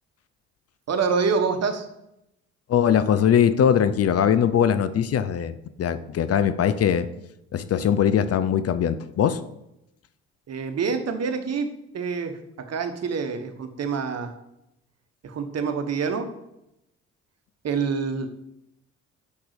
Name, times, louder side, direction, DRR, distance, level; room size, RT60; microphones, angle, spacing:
voice 1, 0.9-1.9 10.5-11.7 11.9-14.3 15.2-16.3 17.6-18.3, right 5 dB, 50° right, 7 dB, 1.2 m, -26 dB
voice 2, 2.7-7.1 7.5-9.4, left 8 dB, 50° left, 14 dB, 0.6 m, -21 dB
5.9 x 5.4 x 6.7 m, 0.84 s
hypercardioid pair, 50°, 32 cm